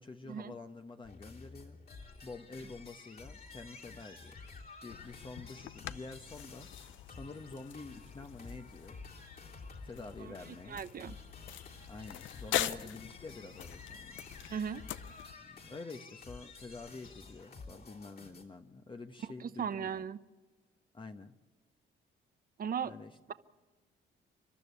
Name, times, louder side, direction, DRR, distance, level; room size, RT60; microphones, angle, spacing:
voice 1, 0.0-1.8 2.2-4.4 4.8-9.0 9.8-10.8 11.9-14.2 15.1-20.1 20.9-21.3 22.8-23.2, left 3 dB, 25° left, 5 dB, 1.1 m, -48 dB
sound 1, 1.0-18.4, left 4 dB, 50° left, 3.4 m, -51 dB
sound 2, 4.9-15.3, left 12 dB, 75° left, 0.6 m, -43 dB
voice 2, 10.7-11.2 12.5-12.8 14.5-14.8 19.4-20.2 22.6-22.9, right 7 dB, 45° right, 13 dB, 0.9 m, -37 dB
29.0 x 12.5 x 8.4 m, 1.3 s
cardioid pair, 90°, 20 cm